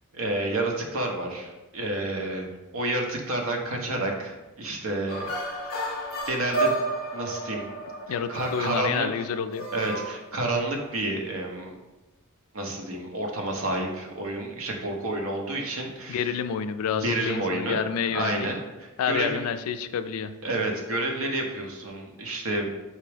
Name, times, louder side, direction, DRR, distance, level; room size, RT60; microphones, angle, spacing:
voice 1, 0.1-5.3 6.2-6.8 7.1-7.7 8.1-9.1 9.7-11.7 12.5-16.4 16.9-17.8 18.1-19.4 20.4-22.8, right 2 dB, 70° right, 1 dB, 0.8 m, -30 dB
sound 1, 5.1-10.7, right 2 dB, 45° left, 0.9 m, -32 dB
voice 2, 8.1-9.7 16.1-18.5 19.0-20.3, left 7 dB, 80° left, 11 dB, 0.3 m, -29 dB
4.5 x 3.4 x 3.3 m, 1.1 s
head